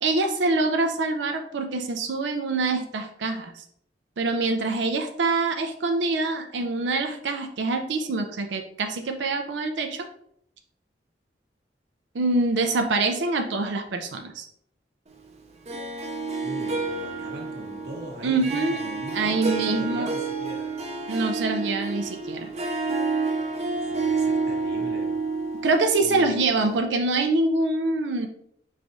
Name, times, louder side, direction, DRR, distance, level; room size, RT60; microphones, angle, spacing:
voice 1, 0.0-3.6 4.2-10.0 12.1-14.4 18.2-18.8 19.1-20.1 21.1-22.5 25.6-28.3, right 3 dB, 90° right, 6 dB, 0.5 m, -25 dB
Harp, 15.7-26.8, right 4 dB, 35° right, 0.5 m, -29 dB
voice 2, 16.4-20.7 23.7-25.1 26.0-26.4, right 1 dB, 60° right, 0 dB, 1.0 m, -40 dB
4.7 x 3.1 x 2.6 m, 0.68 s
head